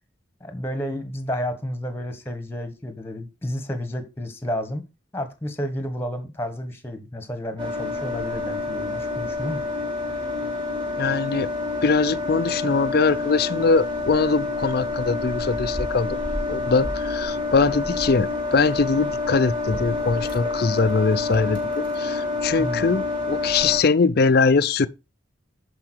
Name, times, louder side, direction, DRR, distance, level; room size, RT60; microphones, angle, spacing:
voice 1, 0.4-4.8 5.1-9.7 22.6-22.9, equal, 10° left, 1.4 m, -31 dB
sound 1, 7.6-23.8, left 3 dB, 25° right, 4.4 m, -28 dB
voice 2, 11.0-11.5 11.8-16.2 16.5-24.9, left 4 dB, 55° left, 0.5 m, -22 dB
11.0 x 4.8 x 4.5 m
head